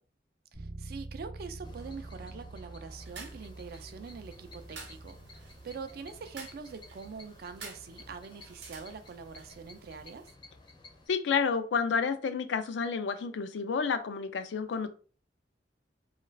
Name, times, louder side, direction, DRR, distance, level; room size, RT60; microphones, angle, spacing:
Bass guitar, 0.5-10.2, right 2 dB, 35° right, 0.7 m, -49 dB
voice 1, 0.5-10.3, right 5 dB, 55° right, 9 dB, 0.3 m, -44 dB
sound 1, 1.6-11.1, left 2 dB, 25° left, 0.5 m, -54 dB
sound 2, 3.0-10.3, right 4 dB, 80° right, 0.7 m, -51 dB
voice 2, 11.1-14.9, left 5 dB, 85° left, 9 dB, 0.4 m, -30 dB
2.3 x 2.3 x 3.1 m, 0.39 s
head